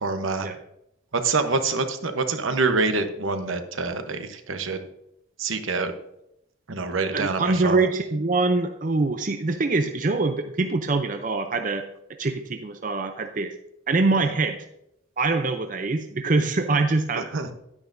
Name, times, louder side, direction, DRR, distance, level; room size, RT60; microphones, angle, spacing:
voice 1, 0.0-0.5 1.2-4.8 5.4-5.9 6.7-7.8 17.3-17.5, right 3 dB, 80° right, 7 dB, 1.0 m, -26 dB
voice 2, 7.1-11.8 12.2-13.5 13.9-14.6 15.2-17.3, right 3 dB, 40° right, 6 dB, 0.5 m, -24 dB
10.5 x 9.6 x 2.6 m, 0.80 s
head